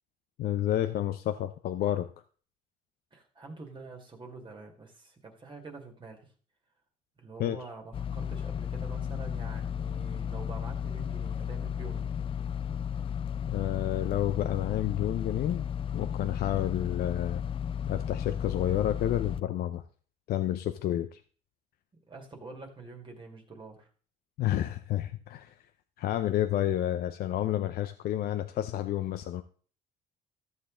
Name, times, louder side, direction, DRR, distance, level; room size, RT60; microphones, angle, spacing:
voice 1, 0.4-2.1 7.4-7.6 13.5-15.7 15.9-17.4 17.9-19.8 20.3-21.2 24.4-25.6 26.0-29.4, left 12 dB, 65° left, 9 dB, 0.7 m, -30 dB
voice 2, 3.1-6.3 7.2-12.1 22.1-23.9, right 3 dB, 30° right, 2 dB, 2.0 m, -46 dB
sound 1, 7.9-19.4, left 8 dB, 30° left, 0.4 m, -34 dB
14.0 x 6.9 x 3.8 m, 0.42 s
cardioid pair, 110°, 17 cm